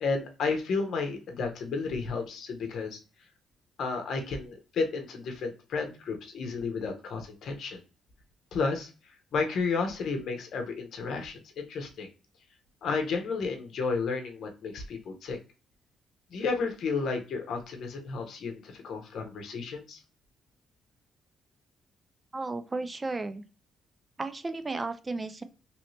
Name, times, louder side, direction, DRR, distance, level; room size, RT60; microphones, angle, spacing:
voice 1, 0.0-3.0 3.8-7.8 8.5-8.9 9.3-12.1 12.8-15.4 16.3-20.0, left 4 dB, 70° left, 4 dB, 0.8 m, -32 dB
voice 2, 22.3-23.4 24.2-25.4, right 3 dB, 25° right, 10 dB, 0.3 m, -34 dB
3.0 x 2.7 x 3.1 m, 0.34 s
cardioid pair, 90°, 0 cm